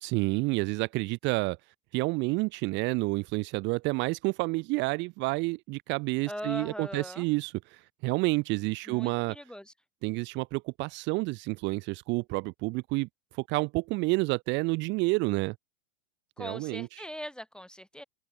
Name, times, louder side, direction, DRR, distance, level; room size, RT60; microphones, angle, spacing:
voice 1, 0.0-1.6 1.9-9.4 10.0-13.1 13.3-15.6 16.4-17.1, right 25 dB, 35° right, 0.5 m, -29 dB
voice 2, 6.3-7.3 8.9-9.7 16.4-18.0, equal, ahead, 0.7 m, -40 dB
open air
supercardioid pair, 135°, 33 cm